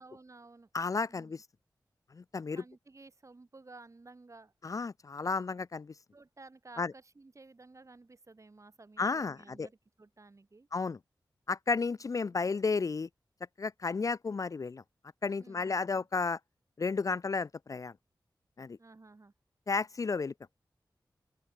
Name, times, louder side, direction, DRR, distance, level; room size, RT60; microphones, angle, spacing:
voice 1, 0.0-0.7 1.1-1.3 2.5-4.5 6.1-10.7 15.4-16.1 18.8-19.3, right 3 dB, 40° right, 5.9 m, -54 dB
voice 2, 0.7-1.4 2.1-2.6 4.6-5.9 6.8-6.9 9.0-9.7 10.7-11.0 11.5-13.1 13.6-14.8 15.2-16.4 16.8-17.9 18.6-18.8 19.7-20.3, left 4 dB, 45° left, 0.4 m, -32 dB
open air
wide cardioid pair, 85°, 8 cm